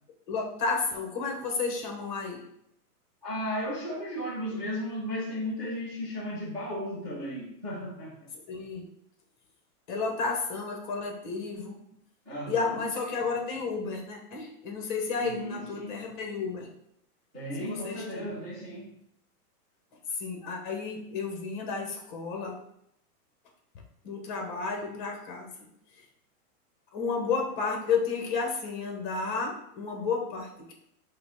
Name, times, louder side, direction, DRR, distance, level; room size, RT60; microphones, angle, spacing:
voice 1, 0.3-2.4 8.3-8.9 9.9-11.8 12.5-16.7 17.6-18.3 20.1-22.6 24.0-25.5 26.0-26.1 26.9-30.7, left 4 dB, 30° left, 2 dB, 0.7 m, -32 dB
voice 2, 3.2-8.3 12.3-12.8 15.2-16.0 17.3-18.9, equal, 15° right, -13 dB, 0.3 m, -35 dB
4.9 x 2.1 x 4.7 m, 0.75 s
supercardioid pair, 160°, 46 cm